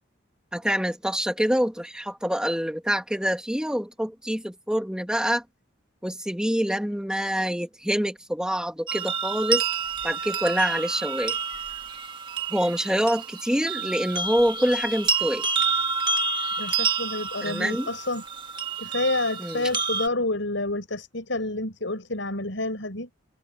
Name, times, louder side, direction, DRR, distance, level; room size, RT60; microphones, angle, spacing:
voice 1, 0.5-5.4 6.0-9.6 10.0-11.4 12.5-15.5 17.4-17.9 19.4-19.7, equal, 5° right, 1.8 m, -26 dB
sound 1, 8.9-20.1, right 5 dB, 25° right, 1.5 m, -29 dB
voice 2, 16.6-18.2 18.8-23.1, left 2 dB, 70° left, 5.8 m, -29 dB
head